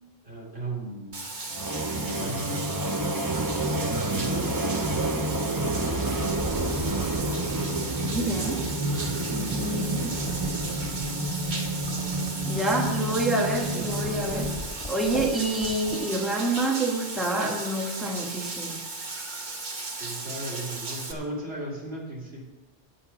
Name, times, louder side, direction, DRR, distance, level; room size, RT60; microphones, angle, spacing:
voice 1, 0.2-1.3 1.9-3.1 3.9-6.5 20.0-22.4, right 1 dB, 65° right, -3 dB, 3.4 m, -37 dB
Bathtub (filling or washing), 1.1-21.1, right 3 dB, 45° right, 1.3 m, -36 dB
sound 1, 1.5-14.8, right 1 dB, 20° right, 0.6 m, -29 dB
sound 2, 5.2-16.2, left 1 dB, 25° left, 2.1 m, -42 dB
voice 2, 8.0-8.6 9.3-10.2 12.4-14.5 14.9-18.8, right 2 dB, ahead, 0 dB, 1.5 m, -28 dB
9.8 x 8.3 x 7.1 m, 1.1 s
omnidirectional pair, 1.1 m